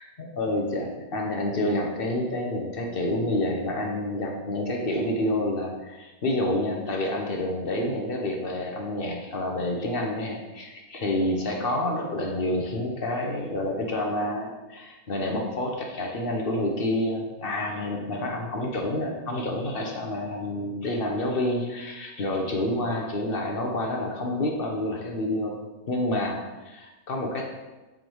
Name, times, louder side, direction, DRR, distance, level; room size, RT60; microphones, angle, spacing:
voice 1, 0.0-25.6 25.9-27.5, left 1 dB, 45° left, 0 dB, 0.8 m, -28 dB
7.4 x 3.7 x 4.6 m, 1.1 s
omnidirectional pair, 1.9 m